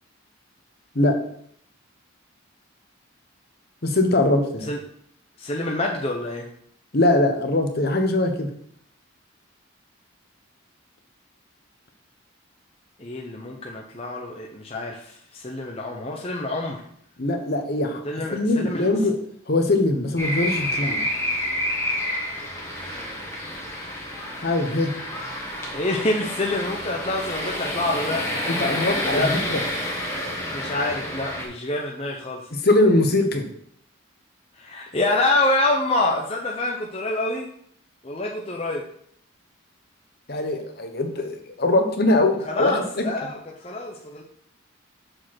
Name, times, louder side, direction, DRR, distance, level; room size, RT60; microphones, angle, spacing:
voice 1, 3.8-4.7 6.9-8.5 17.2-18.0 18.3-19.2 19.5-21.0 24.3-24.9 28.5-29.6 32.5-33.5 40.3-43.0, left 2 dB, 50° left, 5 dB, 1.0 m, -22 dB
voice 2, 5.4-6.5 13.0-16.8 18.0-18.9 25.7-28.5 29.0-29.4 30.5-32.4 34.6-37.5 38.0-38.8 42.5-44.2, left 2 dB, 30° left, 0 dB, 0.7 m, -26 dB
sound 1, 20.2-31.4, left 1 dB, 15° left, 1.6 m, -29 dB
6.5 x 5.1 x 5.9 m, 0.66 s
head